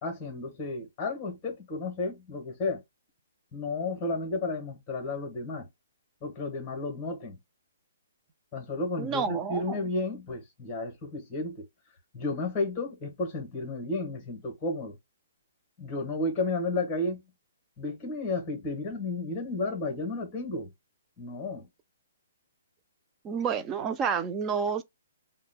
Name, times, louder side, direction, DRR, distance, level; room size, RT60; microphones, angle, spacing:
voice 1, 0.0-2.8 3.5-5.7 6.2-7.4 8.5-11.7 12.1-15.0 15.8-17.2 17.8-20.7 21.2-21.7, left 2 dB, 15° left, 1.1 m, -32 dB
voice 2, 9.0-9.8 23.2-24.8, right 6 dB, 15° right, 0.3 m, -29 dB
4.8 x 2.1 x 2.2 m
hypercardioid pair, 170°, 0 cm